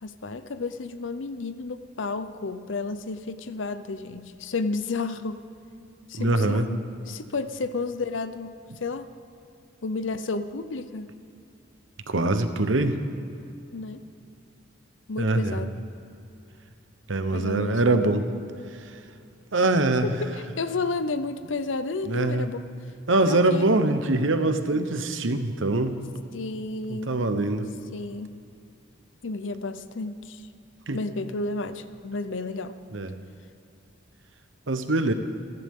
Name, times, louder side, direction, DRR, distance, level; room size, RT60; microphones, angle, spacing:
voice 1, 0.0-5.4 6.1-8.5 8.8-9.1 9.8-11.1 13.7-14.0 15.1-15.8 17.3-17.8 20.0-22.7 23.2-23.7 24.7-24.8 26.3-27.1 27.9-28.4 29.2-30.4 30.9-32.8, left 3 dB, 75° left, 11 dB, 0.7 m, -32 dB
voice 2, 6.1-6.7 12.1-13.0 15.2-15.6 17.1-18.2 19.5-20.1 22.1-22.5 23.1-26.0 26.9-27.7 30.9-31.0 32.9-33.1 34.7-35.1, right 2 dB, 80° right, 9 dB, 1.0 m, -23 dB
29.0 x 11.0 x 3.7 m, 2.7 s
head